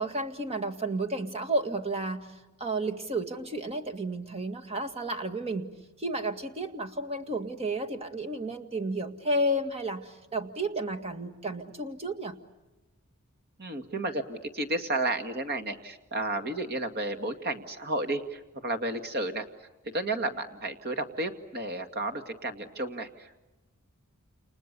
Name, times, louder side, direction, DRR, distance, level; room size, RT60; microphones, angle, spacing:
voice 1, 0.0-5.7 6.0-12.4, right 1 dB, 30° right, 7 dB, 1.9 m, -32 dB
voice 2, 13.6-19.5 19.8-23.4, right 2 dB, 45° right, 8 dB, 2.2 m, -32 dB
29.5 x 29.5 x 6.9 m, 1.1 s
head